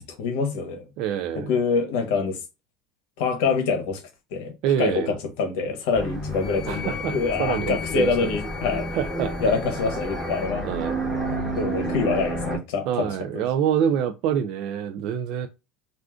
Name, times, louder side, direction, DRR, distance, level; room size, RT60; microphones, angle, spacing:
voice 1, 0.2-0.9 1.5-2.4 3.2-4.0 4.3-4.5 4.8-8.9 9.4-10.7 11.6-13.4, left 5 dB, 70° left, 0.9 m, -25 dB
voice 2, 1.0-1.5 4.6-5.1 6.7-8.4 8.9-9.3 10.6-11.0 12.9-15.5, right 9 dB, 50° right, 0.3 m, -26 dB
sound 1, 5.9-12.6, right 1 dB, 10° right, 1.1 m, -30 dB
Wind instrument woodwind instrument, 6.3-10.5, left 8 dB, 30° left, 0.8 m, -39 dB
2.4 x 2.4 x 3.5 m
cardioid pair, 165°, 0 cm